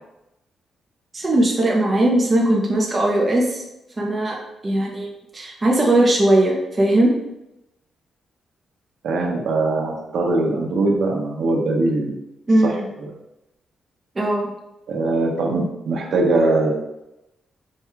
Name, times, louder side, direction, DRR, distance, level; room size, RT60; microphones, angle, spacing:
voice 1, 1.1-3.6 4.0-4.4 4.6-7.1 12.5-12.9 14.1-14.5, right 1 dB, 20° right, -2 dB, 0.6 m, -19 dB
voice 2, 9.0-12.2 14.9-16.7, right 2 dB, 70° right, 0 dB, 0.9 m, -21 dB
4.6 x 2.3 x 4.6 m, 0.91 s
wide cardioid pair, 160°, 0 cm